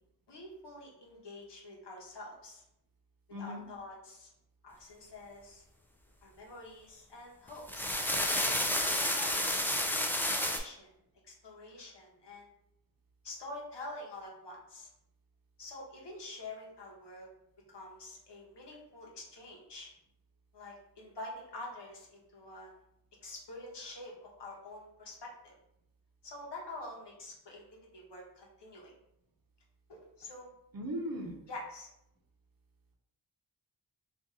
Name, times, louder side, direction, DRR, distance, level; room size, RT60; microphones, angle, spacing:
voice 1, 0.3-2.6 3.4-4.3 4.6-5.6 6.2-7.9 8.8-9.7 10.1-10.9 11.3-12.5 13.2-14.9 15.6-17.3 17.7-19.9 20.5-22.8 23.2-25.5 26.2-27.6 27.9-28.9 29.9-30.5 31.5-31.9, left 2 dB, 80° left, -2 dB, 1.0 m, -47 dB
voice 2, 3.3-3.6 30.7-31.4, equal, 55° right, 1 dB, 0.7 m, -37 dB
sound 1, 7.5-10.6, left 1 dB, 5° left, 0.3 m, -30 dB
2.7 x 2.5 x 3.6 m, 0.79 s
wide cardioid pair, 60°, 42 cm